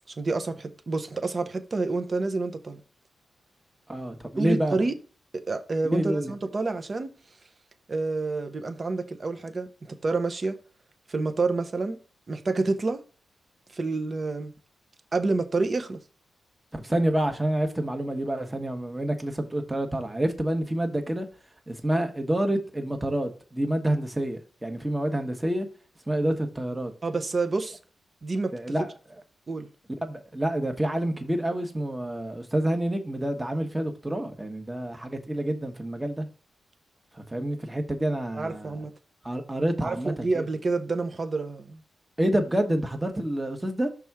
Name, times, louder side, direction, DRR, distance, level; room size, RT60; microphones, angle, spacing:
voice 1, 0.2-2.8 4.4-4.9 5.3-7.1 7.9-10.5 11.1-12.0 12.3-13.0 13.7-14.5 15.1-16.0 27.0-27.8 28.2-28.5 29.5-29.7 38.3-38.9 39.8-41.8, right 3 dB, 35° right, 0.9 m, -28 dB
voice 2, 3.9-4.8 5.8-6.3 16.7-21.3 21.7-25.7 26.1-26.9 28.5-28.9 30.0-36.3 37.1-38.8 39.2-40.5 42.2-43.9, right 1 dB, 10° right, 1.1 m, -28 dB
6.1 x 3.5 x 5.8 m
wide cardioid pair, 115°, 0 cm